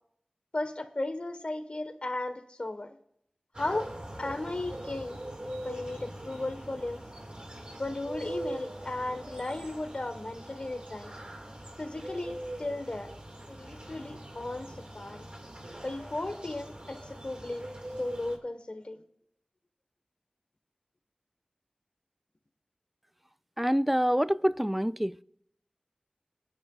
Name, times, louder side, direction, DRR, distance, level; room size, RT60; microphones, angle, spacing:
voice 1, 0.5-3.0 3.6-3.9 4.2-7.1 7.8-11.1 11.8-13.1 13.5-15.3 15.8-17.7 18.0-19.0, left 2 dB, 50° left, 1.2 m, -35 dB
sound 1, 3.5-18.4, right 1 dB, 45° right, 2.0 m, -42 dB
voice 2, 23.6-25.2, equal, 5° right, 0.3 m, -26 dB
25.0 x 9.8 x 2.4 m
wide cardioid pair, 50°, 2 cm